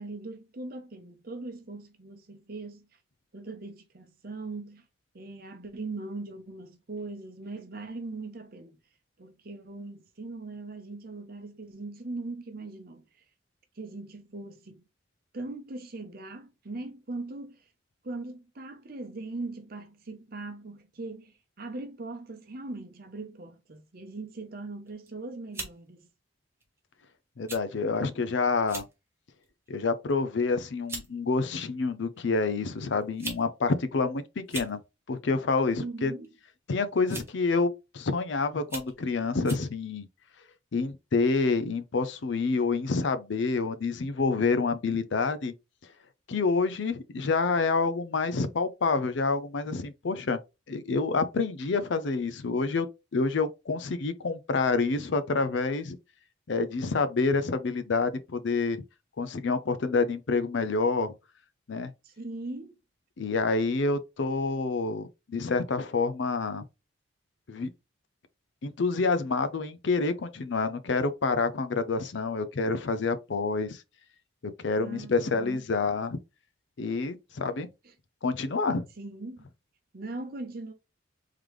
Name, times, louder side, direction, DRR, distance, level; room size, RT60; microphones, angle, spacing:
voice 1, 0.0-2.9 3.3-4.8 5.1-8.8 9.2-13.0 13.8-14.8 15.3-17.6 18.0-26.0 35.8-36.3 62.0-62.7 74.8-75.6 77.8-77.9 79.0-79.5 79.9-80.7, right 2 dB, 45° right, 0.7 m, -40 dB
sound 1, 24.9-25.1 25.5-25.8 26.6-26.8 27.5-27.6 27.9-28.1 28.6-28.9 29.4-29.7 30.5-30.6 30.9-31.1 32.2-32.3 33.0-33.4 33.7-33.8 34.4-34.7 36.0-36.3 37.1-37.4 38.0-38.1 38.6-38.9 39.4-39.7, right 3 dB, 10° right, 1.1 m, -39 dB
voice 2, 27.4-28.8 29.7-34.8 35.1-36.1 36.7-40.1 40.7-45.5 46.3-50.4 50.7-52.9 53.1-56.0 56.5-58.8 59.2-61.1 61.7-61.9 63.2-66.6 67.5-67.7 68.6-73.8 74.4-76.2 76.8-77.7 78.2-78.9, left 4 dB, 65° left, 0.5 m, -28 dB
3.7 x 3.3 x 3.1 m
head